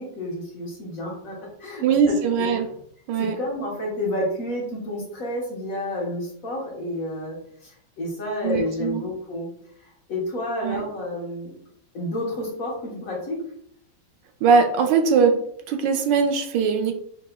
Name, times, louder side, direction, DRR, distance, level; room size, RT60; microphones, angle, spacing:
voice 1, 0.0-2.6 3.2-7.4 7.6-9.5 9.8-11.5 11.9-13.4, left 1 dB, 50° left, -3 dB, 1.4 m, -30 dB
voice 2, 1.8-2.7 3.1-3.4 8.4-9.0 10.6-10.8 14.4-15.4 15.7-16.9, right 5 dB, 75° right, 5 dB, 1.2 m, -20 dB
5.6 x 3.0 x 2.2 m, 0.67 s
omnidirectional pair, 2.1 m